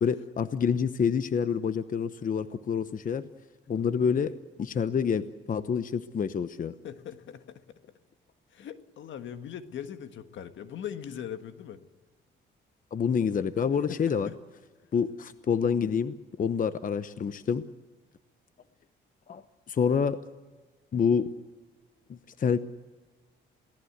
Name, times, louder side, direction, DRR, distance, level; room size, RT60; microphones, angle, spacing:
voice 1, 0.0-3.3 3.7-4.3 4.6-6.7 12.9-14.3 14.9-17.6 19.3-19.4 19.7-20.2 20.9-21.3 22.1-22.6, left 6 dB, 45° left, 12 dB, 0.9 m, -27 dB
voice 2, 6.8-7.6 8.5-11.8 13.7-14.4, left 9 dB, 70° left, 9 dB, 1.6 m, -40 dB
28.0 x 18.0 x 8.1 m, 1.3 s
cardioid pair, 90°, 20 cm